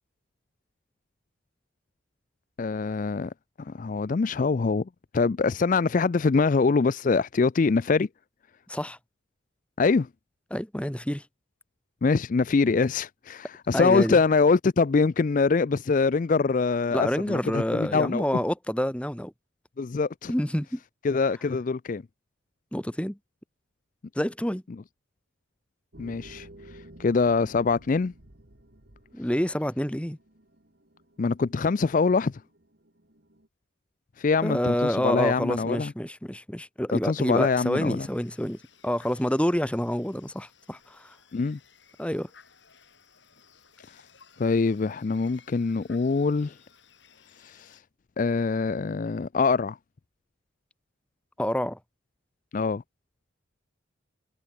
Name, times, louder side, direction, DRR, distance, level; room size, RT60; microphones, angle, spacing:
voice 1, 2.6-3.3 3.6-4.8 5.1-8.1 9.8-10.1 12.0-18.2 19.8-20.3 21.0-22.0 26.0-26.5 27.0-28.1 31.2-32.4 34.2-35.9 36.9-38.1 41.3-41.6 44.4-46.5 47.4-47.8 48.2-49.8 52.5-52.8, left 4 dB, 40° left, 0.4 m, -24 dB
voice 2, 8.7-9.0 10.5-11.2 13.7-14.2 16.9-19.3 20.3-20.8 22.7-23.2 24.1-24.6 29.1-30.2 34.4-41.1 42.0-42.3 51.4-51.8, equal, 5° left, 1.1 m, -28 dB
sound 1, 25.9-33.5, right 1 dB, 55° right, 2.9 m, -52 dB
sound 2, 37.2-47.8, left 6 dB, 65° left, 6.9 m, -58 dB
head